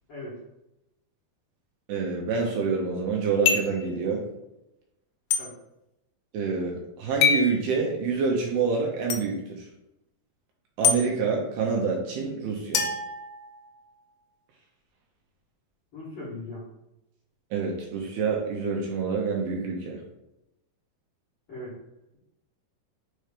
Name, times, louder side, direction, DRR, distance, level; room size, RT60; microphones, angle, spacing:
voice 1, 0.1-0.4 5.4-5.5 15.9-16.6 21.5-21.7, left 1 dB, 50° left, -9 dB, 1.8 m, -38 dB
voice 2, 1.9-4.2 6.3-9.7 10.8-12.8 17.5-20.0, right 5 dB, 75° right, -1 dB, 2.6 m, -27 dB
sound 1, 3.5-3.8 5.3-5.4 7.2-7.5 9.1-9.2 10.8-11.0 12.7-13.8, left 6 dB, 85° left, 2.0 m, -24 dB
6.5 x 3.0 x 5.0 m, 0.89 s
omnidirectional pair, 5.0 m